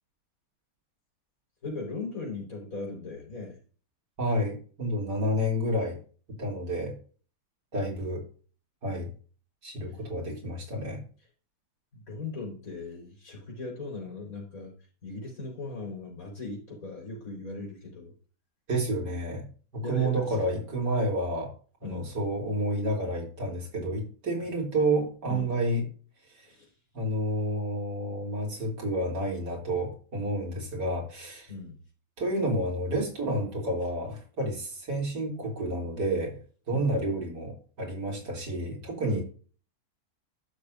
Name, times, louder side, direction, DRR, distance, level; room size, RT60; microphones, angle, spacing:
voice 1, 1.6-3.6 9.9-10.0 11.9-14.7 15.0-18.1 19.8-20.4 21.8-22.1 25.3-25.5 26.5-26.7 31.5-31.8 34.4-34.5 36.7-36.9 39.1-39.2, left 3 dB, 55° left, -2 dB, 4.9 m, -38 dB
voice 2, 4.2-6.0 6.4-7.0 7.7-8.2 8.8-9.1 9.6-11.0 18.7-19.4 19.7-21.5 21.8-25.8 26.9-31.5 32.2-36.4 36.7-39.2, right 1 dB, 85° right, -2 dB, 3.8 m, -30 dB
12.5 x 6.8 x 2.6 m, 0.39 s
omnidirectional pair, 1.8 m